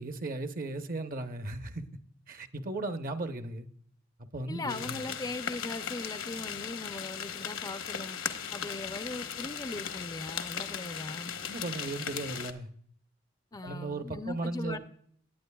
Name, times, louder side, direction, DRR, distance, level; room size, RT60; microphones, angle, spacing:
voice 1, 0.0-1.9 2.3-3.7 4.2-5.0 11.5-12.7 13.6-14.8, right 2 dB, 45° right, 0.8 m, -36 dB
voice 2, 4.5-8.2 8.5-11.4 13.5-14.8, left 2 dB, 20° left, 0.5 m, -39 dB
sound 1, 4.7-12.5, left 8 dB, 65° left, 0.9 m, -38 dB
18.0 x 9.1 x 2.3 m
head